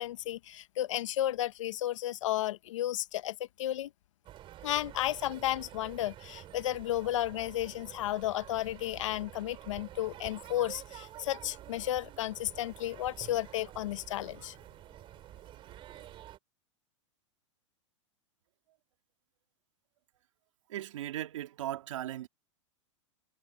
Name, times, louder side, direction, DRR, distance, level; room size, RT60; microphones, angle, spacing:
voice 1, 0.0-3.9 4.6-14.5, left 13 dB, 75° left, 1.2 m, -33 dB
sound 1, 4.2-16.4, right 13 dB, 30° right, 5.9 m, -49 dB
voice 2, 20.7-22.3, right 13 dB, 80° right, 2.8 m, -37 dB
supercardioid pair, 135°, 16 cm